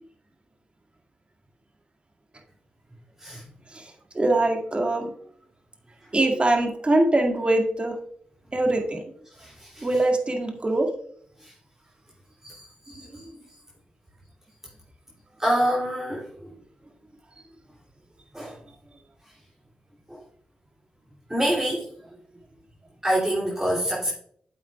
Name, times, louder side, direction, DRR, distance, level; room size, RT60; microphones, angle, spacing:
voice 1, 3.7-5.1 6.1-8.0 8.5-9.0 9.8-10.9 12.9-13.3, right 2 dB, 35° right, 2 dB, 2.0 m, -23 dB
voice 2, 9.4-9.9 11.4-11.5 12.4-13.2 15.4-16.5 18.3-18.6 20.1-20.2 21.3-21.9 23.0-24.1, right 1 dB, 15° right, -6 dB, 2.8 m, -27 dB
9.2 x 7.6 x 2.3 m, 0.63 s
cardioid pair, 55°, 3 cm